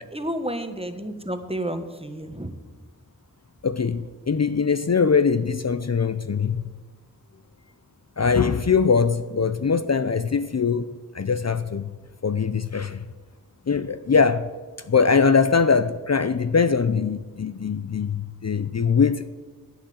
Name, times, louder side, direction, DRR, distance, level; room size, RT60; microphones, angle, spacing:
voice 1, 0.1-2.5, right 1 dB, 15° right, 1.3 m, -31 dB
voice 2, 3.6-6.6 8.2-12.0 12.2-13.0 13.7-14.5 14.9-19.3, left 5 dB, 45° left, 0.5 m, -22 dB
11.5 x 8.9 x 7.8 m
wide cardioid pair, 50°, 36 cm